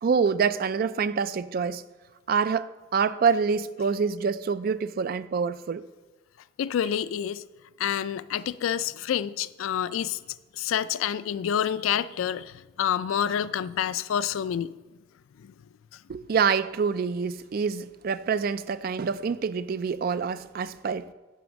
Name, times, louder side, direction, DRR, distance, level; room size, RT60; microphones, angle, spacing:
voice 1, 0.0-1.8 2.3-5.8 16.1-21.1, right 6 dB, 50° right, 0.3 m, -26 dB
voice 2, 6.6-7.4 7.8-10.2 10.5-14.7 15.4-15.5, left 9 dB, 85° left, 0.3 m, -28 dB
9.3 x 4.8 x 6.2 m
head